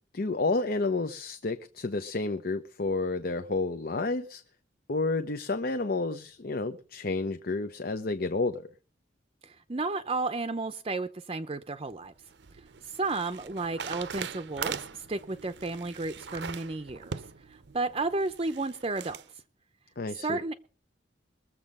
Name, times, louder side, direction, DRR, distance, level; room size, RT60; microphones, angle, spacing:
voice 1, 0.1-4.4 4.9-8.7 20.0-20.4, left 3 dB, 55° left, 0.8 m, -30 dB
voice 2, 9.4-12.1 12.6-19.2 20.1-20.5, right 3 dB, 30° right, 0.6 m, -33 dB
sound 1, 11.9-19.3, right 6 dB, 65° right, 0.7 m, -41 dB
22.0 x 7.6 x 5.4 m
head